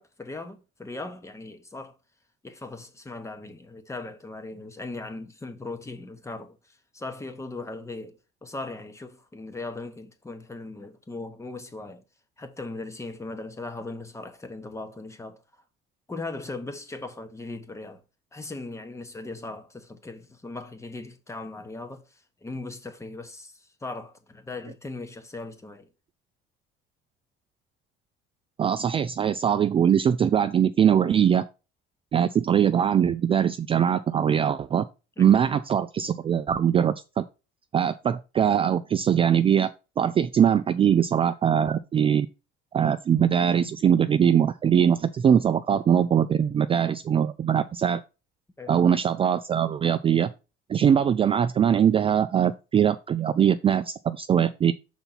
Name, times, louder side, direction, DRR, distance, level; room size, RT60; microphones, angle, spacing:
voice 1, 0.0-2.0 2.4-12.0 12.4-15.4 16.1-18.0 18.3-22.0 22.4-25.9 35.2-35.4 48.6-48.7, left 2 dB, 15° left, 1.0 m, -38 dB
voice 2, 28.6-31.4 32.1-34.8 35.2-37.2 37.7-39.7 40.0-42.3 42.7-48.0 48.7-50.3 50.7-54.7, right 8 dB, 25° right, 0.3 m, -22 dB
5.8 x 4.0 x 5.6 m
cardioid pair, 120°, 21 cm